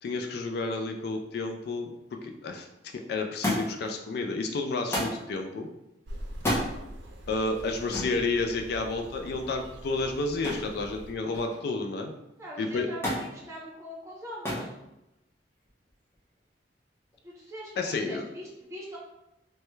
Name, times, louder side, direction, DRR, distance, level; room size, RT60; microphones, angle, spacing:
voice 1, 0.0-2.7 3.1-5.7 7.3-12.1 12.6-12.9 17.8-18.2, left 3 dB, 60° left, 4 dB, 0.3 m, -31 dB
Thump thud, 3.4-3.9 4.9-5.2 6.3-6.7 7.9-8.2 10.4-10.8 11.1-11.7 13.0-13.3 14.4-14.7 15.7-16.1 17.1-17.2, left 1 dB, 15° left, 0.8 m, -30 dB
sound 1, 6.0-11.1, equal, 85° right, 0.5 m, -43 dB
voice 2, 12.4-14.7 17.2-19.0, equal, 15° right, -5 dB, 0.8 m, -42 dB
3.1 x 2.2 x 3.0 m, 0.91 s
head